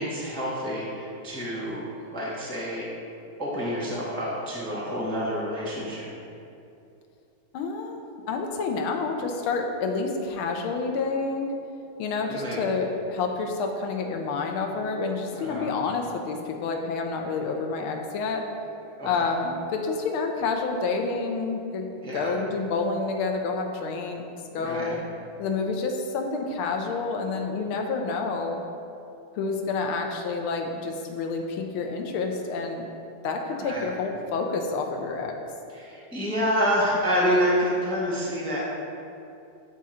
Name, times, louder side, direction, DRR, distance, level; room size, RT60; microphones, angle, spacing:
voice 1, 0.0-2.9 3.4-6.1 12.3-12.6 15.3-15.7 19.0-19.3 22.0-22.3 24.6-25.0 33.5-33.9 35.7-38.6, equal, 5° left, -6 dB, 0.8 m, -28 dB
voice 2, 7.5-11.5 12.0-18.4 19.0-21.8 22.1-24.2 24.5-25.0 25.4-28.6 29.4-32.9 33.2-35.3, left 4 dB, 80° left, 3 dB, 1.6 m, -28 dB
9.5 x 3.7 x 4.3 m, 2.6 s
omnidirectional pair, 2.3 m